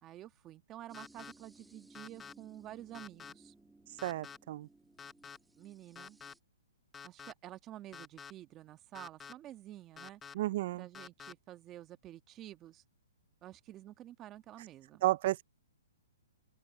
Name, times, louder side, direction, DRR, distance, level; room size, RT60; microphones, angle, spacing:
voice 1, 0.0-3.5 5.6-6.2 7.0-10.2 10.8-12.8 13.4-15.0, right 13 dB, 20° right, 1.4 m, -50 dB
sound 1, 0.9-1.3 1.9-2.3 2.9-3.3 4.0-4.4 5.0-5.4 5.9-6.3 6.9-7.3 7.9-8.3 8.9-9.3 10.0-10.3 10.9-11.3, left 6 dB, 10° left, 0.9 m, -48 dB
sound 2, 0.9-6.4, right 2 dB, 5° right, 2.7 m, -61 dB
voice 2, 4.0-4.7 10.3-10.9 15.0-15.4, right 16 dB, 45° right, 0.5 m, -32 dB
open air
hypercardioid pair, 150°, 0 cm